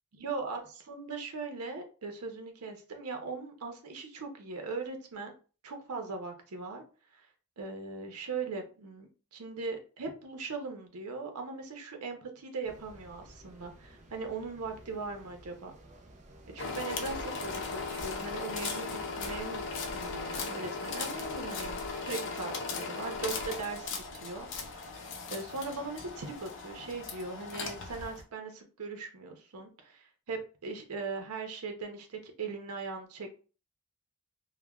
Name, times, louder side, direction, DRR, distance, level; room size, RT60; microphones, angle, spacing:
voice 1, 0.2-5.3 5.6-6.8 7.1-7.3 7.6-15.7 16.5-19.6 19.9-33.4, right 4 dB, 85° right, 4 dB, 0.6 m, -39 dB
sound 1, 12.6-20.1, right 1 dB, 30° right, 0.4 m, -54 dB
sound 2, 16.6-28.2, left 4 dB, 60° left, 0.5 m, -37 dB
3.1 x 2.1 x 2.3 m, 0.36 s
head